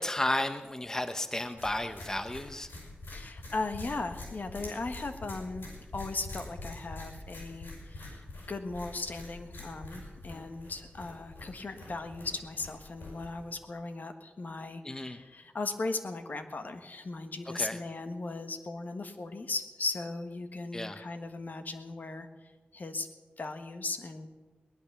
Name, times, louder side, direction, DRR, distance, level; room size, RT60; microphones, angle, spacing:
voice 1, 0.0-2.7 14.8-15.2 17.5-17.8 20.7-21.0, left 1 dB, 15° left, 9 dB, 0.9 m, -33 dB
sound 1, 1.6-13.6, left 2 dB, 90° left, 6.3 m, -45 dB
voice 2, 3.1-5.7 5.9-23.1 23.4-24.3, left 3 dB, 55° left, 7 dB, 1.4 m, -37 dB
18.5 x 11.0 x 6.9 m, 1.3 s
wide cardioid pair, 95°, 3 cm